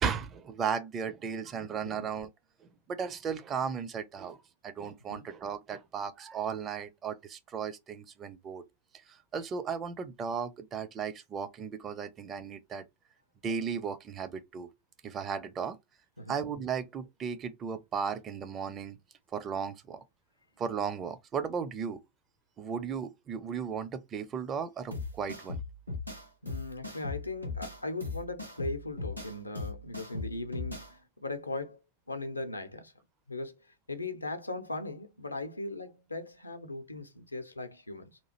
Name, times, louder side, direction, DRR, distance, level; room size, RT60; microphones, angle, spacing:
voice 1, 0.0-2.3 2.6-4.4 4.6-8.6 9.1-12.8 13.4-14.7 15.0-15.8 16.3-19.0 19.3-20.0 20.6-22.0 22.6-25.6, right 6 dB, 25° right, 0.4 m, -35 dB
sound 1, 24.9-30.9, left 3 dB, 90° right, 0.9 m, -38 dB
voice 2, 26.4-31.8 32.1-32.9 33.3-33.5 33.9-38.2, left 2 dB, 85° left, 0.5 m, -38 dB
2.9 x 2.4 x 2.8 m
figure-of-eight pair, 90°, 0 cm